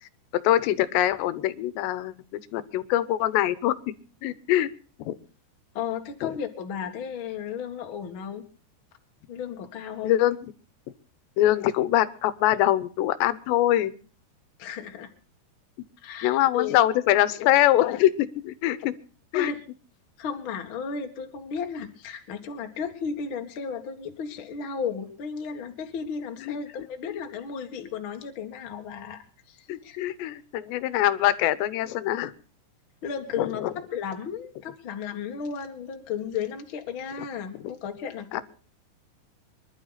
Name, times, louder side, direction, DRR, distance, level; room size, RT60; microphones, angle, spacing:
voice 1, 0.4-3.9 4.2-4.7 5.0-5.2 6.2-6.3 10.0-10.4 11.4-13.9 16.2-18.9 19.3-19.5 26.5-26.6 27.1-27.2 29.7-32.3 33.4-33.7 38.3-38.4, left 13 dB, 85° left, 15 dB, 3.1 m, -23 dB
voice 2, 5.7-8.4 9.3-10.2 14.6-15.1 16.0-16.8 19.3-19.6 20.2-30.0 33.0-38.4, left 6 dB, 45° left, 4 dB, 1.7 m, -34 dB
24.5 x 12.0 x 4.0 m, 0.39 s
omnidirectional pair, 4.9 m